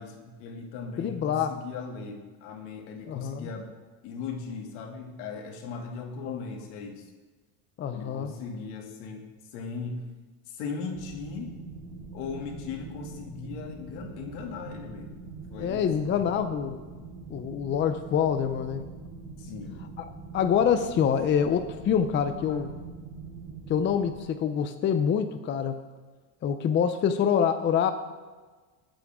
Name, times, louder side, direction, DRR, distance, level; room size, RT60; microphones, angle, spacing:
voice 1, 0.0-3.7 4.0-7.0 7.9-9.2 9.5-10.0 10.5-11.5 12.1-15.1 15.5-16.2 19.4-19.9 22.2-22.6, left 5 dB, 80° left, 2 dB, 2.5 m, -38 dB
voice 2, 1.0-1.6 3.1-3.5 6.2-6.4 7.8-8.3 15.6-16.8 17.3-18.9 20.0-22.7 23.7-25.8 26.4-27.9, left 8 dB, 25° left, 8 dB, 0.6 m, -26 dB
sound 1, 10.9-24.2, right 4 dB, 15° right, 4.0 m, -43 dB
21.0 x 9.0 x 3.7 m, 1.4 s
cardioid pair, 150°, 44 cm